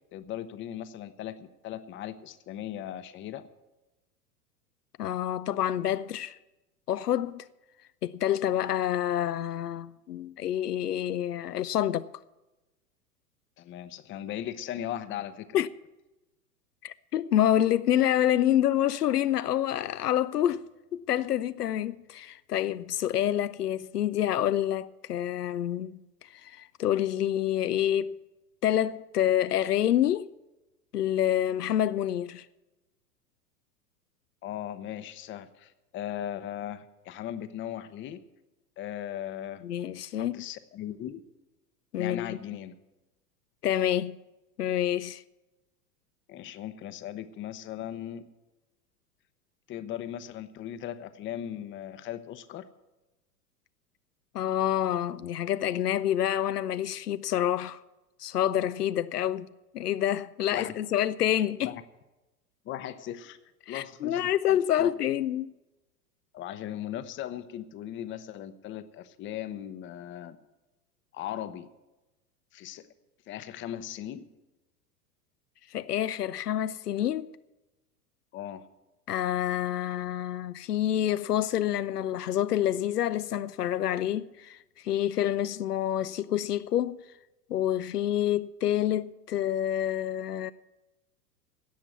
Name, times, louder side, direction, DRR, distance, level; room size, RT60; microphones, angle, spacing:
voice 1, 0.1-3.5 13.6-15.5 34.4-38.2 38.8-39.6 40.2-41.2 42.0-42.7 46.3-48.2 49.7-52.7 60.5-60.7 61.6-61.8 62.6-63.4 63.7-64.9 66.3-70.4 71.1-71.7 72.5-72.9 73.3-74.3 78.3-78.7, left 11 dB, 25° left, 0.8 m, -38 dB
voice 2, 5.0-6.4 6.9-7.4 8.0-12.1 15.5-15.7 16.8-20.7 20.9-28.2 28.6-30.3 30.9-32.5 39.6-40.4 41.9-42.4 43.6-44.2 44.6-45.2 54.3-57.8 58.2-61.7 63.7-65.5 75.7-77.3 79.1-87.0 87.5-90.5, left 11 dB, 80° left, 0.6 m, -27 dB
17.0 x 5.9 x 9.3 m
figure-of-eight pair, 95°, 46 cm